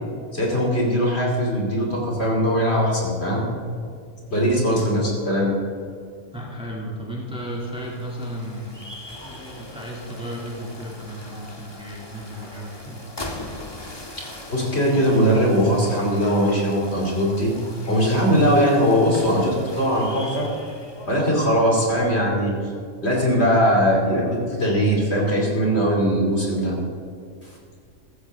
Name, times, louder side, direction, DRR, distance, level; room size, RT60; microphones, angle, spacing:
voice 1, 0.3-3.5 4.3-5.5 14.5-17.5 17.9-20.5 21.1-22.6 23.0-26.7 27.4-27.5, equal, 45° left, -2 dB, 3.2 m, -20 dB
voice 2, 6.3-13.2, equal, 5° right, -4 dB, 2.5 m, -35 dB
sound 1, 7.3-21.4, left 1 dB, 20° left, 1.4 m, -40 dB
14.5 x 14.5 x 3.6 m, 2.3 s
omnidirectional pair, 1.5 m